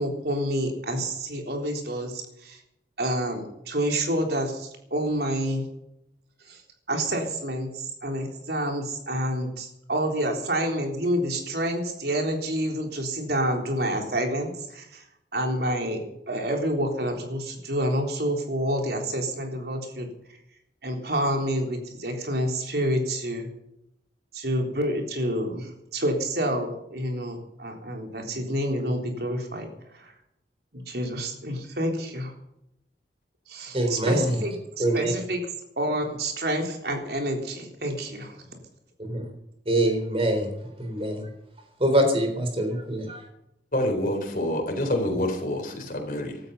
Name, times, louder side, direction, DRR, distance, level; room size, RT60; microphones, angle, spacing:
voice 1, 0.0-2.6 3.0-5.7 6.4-6.6 6.9-15.1 15.3-20.1 20.8-23.5 24.3-29.7 29.9-30.1 30.7-32.3 33.5-35.4 35.8-38.6, right 1 dB, 65° right, 2 dB, 3.7 m, -28 dB
voice 2, 33.7-34.3 34.8-35.1 39.1-39.2 39.7-40.5 40.8-41.3 41.8-43.2, right 1 dB, 30° right, 5 dB, 4.0 m, -24 dB
voice 3, 43.7-46.4, left 1 dB, 50° left, 4 dB, 3.9 m, -27 dB
16.0 x 13.0 x 5.6 m, 0.81 s
head